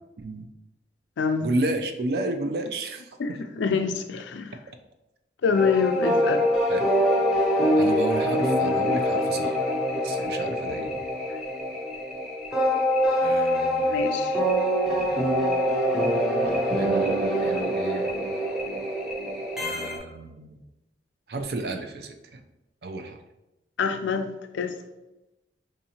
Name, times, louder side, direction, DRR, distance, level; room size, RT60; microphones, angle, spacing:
voice 1, 0.2-0.5 1.4-3.5 6.7-6.9 7.8-9.6 10.0-11.0 13.2-14.3 14.9-15.4 16.3-18.1 19.6-20.6 21.3-22.4 22.8-23.2, right 2 dB, 55° right, 6 dB, 0.4 m, -32 dB
voice 2, 3.2-4.5 5.4-6.4 10.2-10.3 13.9-14.4 23.8-24.8, left 5 dB, 85° left, 8 dB, 0.4 m, -26 dB
sound 1, 5.5-20.0, equal, 5° right, 0.5 m, -24 dB
4.9 x 2.7 x 2.8 m, 0.97 s
head